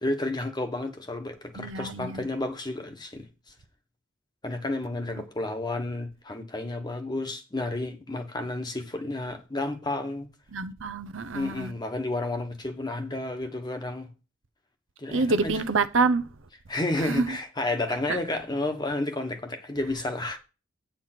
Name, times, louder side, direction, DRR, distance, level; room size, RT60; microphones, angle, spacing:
voice 1, 0.0-3.2 4.4-10.3 11.3-14.1 15.0-15.5 16.7-20.4, left 2 dB, 20° left, 1.2 m, -31 dB
voice 2, 1.6-2.3 5.1-5.2 10.5-11.7 15.1-16.3 17.0-17.4 18.1-18.2, right 3 dB, 80° right, 0.8 m, -27 dB
9.1 x 4.5 x 5.9 m
head